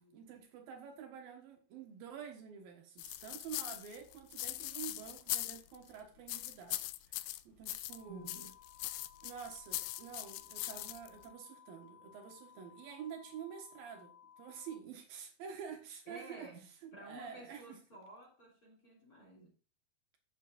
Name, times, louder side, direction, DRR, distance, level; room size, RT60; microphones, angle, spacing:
voice 1, 0.1-8.2 9.2-14.1 14.4-16.5 16.8-17.8, right 7 dB, 70° right, 2.9 m, -48 dB
sound 1, 3.0-5.9 6.3-8.0 8.3-11.3, left 17 dB, 85° left, 2.5 m, -41 dB
sound 2, 7.9-14.7, left 9 dB, 15° right, 2.6 m, -60 dB
voice 2, 8.1-8.5 16.1-19.6, right 1 dB, 25° left, 3.0 m, -53 dB
14.0 x 7.2 x 2.5 m
omnidirectional pair, 4.5 m